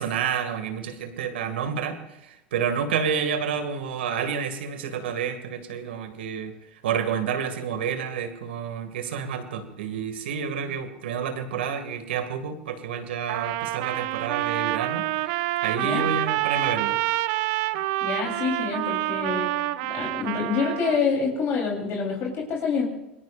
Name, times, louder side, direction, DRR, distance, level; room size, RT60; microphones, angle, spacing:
voice 1, 0.0-6.5 6.8-17.0, right 7 dB, 75° right, 7 dB, 2.1 m, -29 dB
Trumpet, 13.3-21.0, right 16 dB, 60° right, 0.7 m, -27 dB
voice 2, 18.0-19.5 19.9-22.9, left 5 dB, 45° left, -1 dB, 3.7 m, -27 dB
26.5 x 20.0 x 2.5 m, 0.90 s
hypercardioid pair, 90°, 6 cm